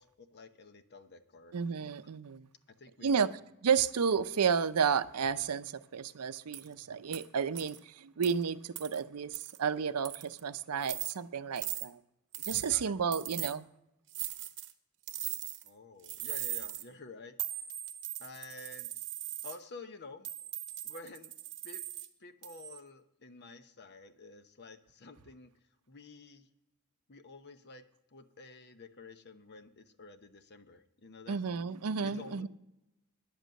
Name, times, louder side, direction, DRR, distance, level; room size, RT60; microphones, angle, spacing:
voice 1, 0.0-1.9 2.8-3.3 12.6-13.0 15.6-17.3 18.2-18.9 19.4-20.3 20.8-21.3 21.6-21.8 22.2-25.5 25.9-26.5 27.1-27.8 28.1-31.4 32.0-32.5, left 3 dB, 50° left, 0.9 m, -50 dB
voice 2, 1.5-2.4 3.0-3.3 3.6-12.0 12.4-13.7 31.3-32.5, right 6 dB, 85° right, 0.6 m, -32 dB
sound 1, 6.5-6.7 7.1-7.2 7.5-7.8 8.2-8.3 8.8-9.0 9.3-9.6 10.0-10.4 10.8-11.1 11.6-11.9 12.3-12.7 13.1-13.5 14.1-14.7 15.1-15.7 16.0-16.8 17.4-19.6 20.2-22.1 22.4-22.8, right 13 dB, 55° right, 0.9 m, -39 dB
10.5 x 8.1 x 7.7 m
head